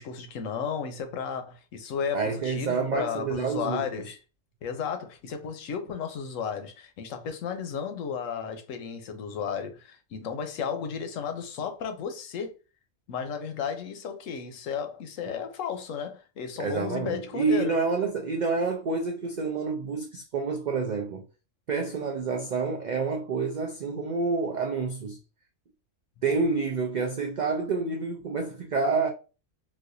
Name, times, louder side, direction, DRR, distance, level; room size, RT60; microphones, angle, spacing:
voice 1, 0.0-4.2 4.6-12.5 13.1-17.8, left 7 dB, 90° left, 1.0 m, -33 dB
voice 2, 2.1-3.9 16.6-21.2 21.7-25.2 26.2-29.1, right 4 dB, 80° right, 0.4 m, -28 dB
4.0 x 2.5 x 2.6 m
omnidirectional pair, 1.3 m